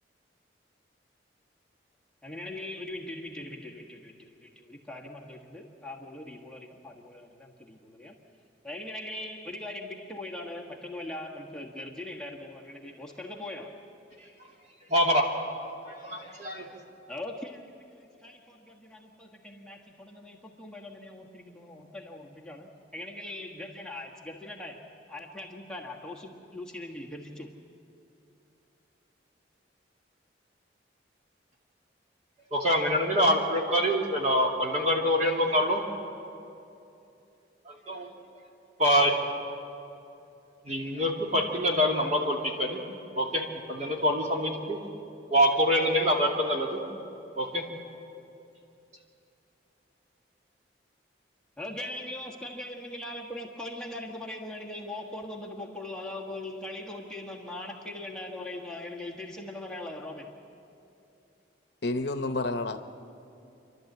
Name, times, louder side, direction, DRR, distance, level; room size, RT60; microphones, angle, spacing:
voice 1, 2.2-8.2 8.6-13.8 17.1-27.5 51.6-60.4, left 1 dB, 5° left, -2 dB, 1.4 m, -41 dB
voice 2, 14.2-14.5 14.9-16.8 32.5-35.8 37.6-38.1 38.8-39.2 40.6-42.8 43.1-44.8 45.3-46.8 47.3-47.6, equal, 40° right, -1 dB, 2.5 m, -26 dB
voice 3, 61.8-62.8, left 2 dB, 60° left, 8 dB, 0.8 m, -29 dB
29.5 x 12.0 x 8.0 m, 2.8 s
head